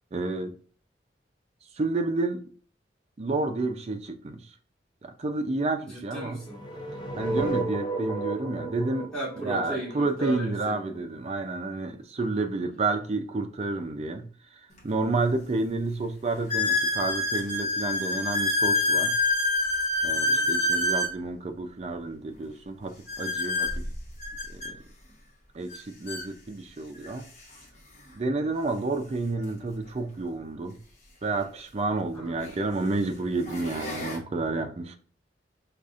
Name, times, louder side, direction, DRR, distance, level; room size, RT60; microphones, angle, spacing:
voice 1, 0.1-0.5 1.8-2.4 3.2-4.5 5.0-6.4 7.2-9.1 9.4-14.3 14.8-19.2 20.0-23.9 24.5-24.8 25.5-27.2 28.1-30.8 31.2-35.0, right 3 dB, 35° right, 0.4 m, -30 dB
voice 2, 5.8-6.6 7.3-7.6 9.1-11.0 11.8-12.0 20.1-20.5 28.2-28.5 32.1-32.5, right 1 dB, 5° left, 1.8 m, -37 dB
sound 1, 6.4-10.5, right 2 dB, 25° left, 0.6 m, -33 dB
sound 2, 14.8-14.9 15.5-15.6 16.5-21.1 23.1-24.7 25.7-25.8 26.1-26.3 27.0-27.1 29.4-29.5 31.5-31.6 32.4-32.7 33.2-34.2, left 2 dB, 40° left, 1.1 m, -27 dB
5.1 x 2.4 x 2.5 m
head